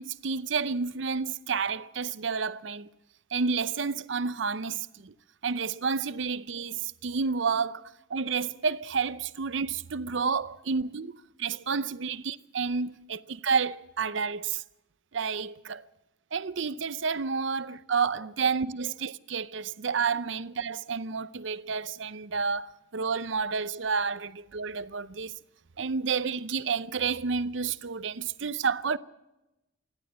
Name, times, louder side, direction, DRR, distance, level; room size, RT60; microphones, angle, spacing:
voice 1, 0.0-2.9 3.3-5.1 5.4-14.6 15.1-15.8 16.3-25.3 25.8-29.0, right 5 dB, 70° right, 0.6 m, -30 dB
27.0 x 11.5 x 8.7 m
head